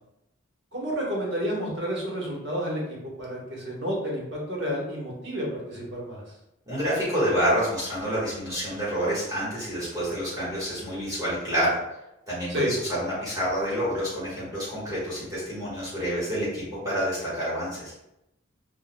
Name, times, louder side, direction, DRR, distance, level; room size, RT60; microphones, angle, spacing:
voice 1, 0.7-6.3 12.5-12.7, equal, 55° right, -3 dB, 1.2 m, -30 dB
voice 2, 6.7-11.8 12.3-17.9, equal, 15° right, -9 dB, 1.4 m, -28 dB
6.2 x 2.5 x 2.2 m, 0.88 s
head